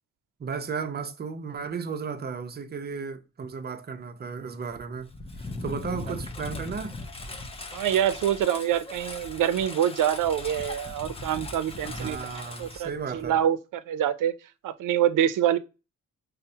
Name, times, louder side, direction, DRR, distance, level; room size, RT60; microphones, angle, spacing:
voice 1, 0.4-5.1 5.4-7.0 11.9-13.4, right 5 dB, 30° right, 0.5 m, -34 dB
Engine, 4.7-13.4, left 2 dB, 20° left, 0.5 m, -39 dB
voice 2, 7.7-14.3 14.6-15.6, right 10 dB, 85° right, 0.5 m, -26 dB
5.5 x 2.0 x 2.7 m
wide cardioid pair, 110°, 31 cm